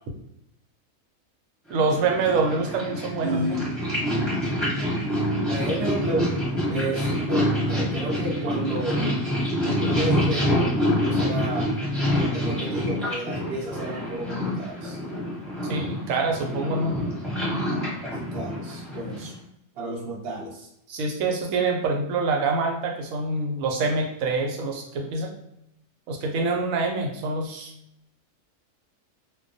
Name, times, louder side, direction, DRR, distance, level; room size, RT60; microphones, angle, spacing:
Purr, 1.7-19.4, equal, ahead, 1.0 m, -26 dB
voice 1, 1.7-3.6 15.7-17.0 20.9-25.3 26.1-27.7, right 3 dB, 80° right, 2 dB, 1.0 m, -25 dB
voice 2, 3.2-3.7 5.5-6.3 6.7-9.1 9.6-10.7 11.1-11.7 12.1-15.0 18.1-19.3 19.8-20.7, right 2 dB, 60° right, -2 dB, 0.7 m, -31 dB
2.2 x 2.2 x 2.5 m, 0.78 s
omnidirectional pair, 1.4 m